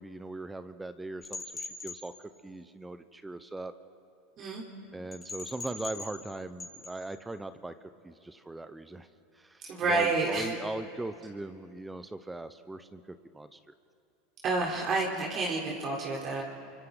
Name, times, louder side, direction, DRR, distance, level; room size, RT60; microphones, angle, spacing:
voice 1, 0.0-3.7 4.9-9.1 9.3-13.6, right 2 dB, 10° right, 12 dB, 0.9 m, -40 dB
sound 1, 1.2-2.0 5.1-6.3 6.6-7.0, left 3 dB, 25° left, 4.1 m, -41 dB
voice 2, 9.7-10.5 14.4-16.4, right 3 dB, 45° right, -3 dB, 3.8 m, -29 dB
29.0 x 24.5 x 4.0 m, 2.7 s
hypercardioid pair, 85°, 0 cm